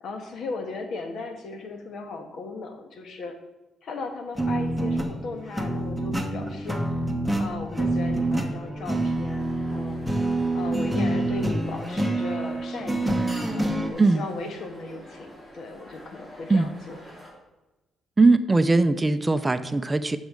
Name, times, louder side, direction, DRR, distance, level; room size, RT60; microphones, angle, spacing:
voice 1, 0.0-3.3 3.8-7.0 7.4-13.2 13.5-17.0, left 3 dB, 65° left, 5 dB, 1.3 m, -37 dB
sound 1, 4.4-13.9, right 1 dB, ahead, 1.0 m, -27 dB
sound 2, 9.4-17.3, equal, 25° left, 3.4 m, -47 dB
voice 2, 14.0-14.3 16.5-16.7 18.2-20.2, right 3 dB, 20° right, 11 dB, 0.5 m, -20 dB
10.5 x 6.3 x 3.7 m, 1.1 s
cardioid pair, 90°, 0 cm